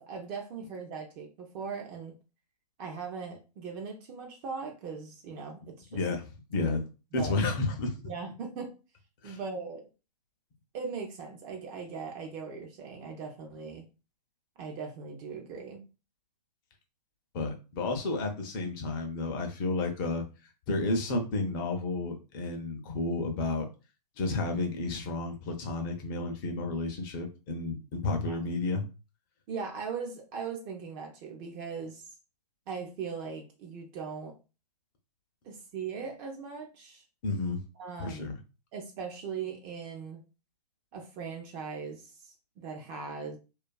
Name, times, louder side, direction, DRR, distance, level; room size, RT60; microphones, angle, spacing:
voice 1, 0.0-2.1 2.8-6.1 6.6-6.8 7.1-7.4 8.0-8.7 9.2-9.9 10.7-13.9 14.6-15.8 28.3-28.4 29.5-32.0 32.7-34.3 35.4-37.0 37.8-38.3 38.7-40.2 40.9-43.4, right 5 dB, 25° right, 2 dB, 0.4 m, -39 dB
voice 2, 5.9-6.8 7.1-8.0 9.2-9.4 17.3-20.3 20.7-23.7 24.2-28.8 37.2-37.6 38.0-38.3, left 3 dB, 35° left, 4 dB, 0.5 m, -31 dB
2.4 x 2.3 x 2.2 m, 0.31 s
hypercardioid pair, 130°, 21 cm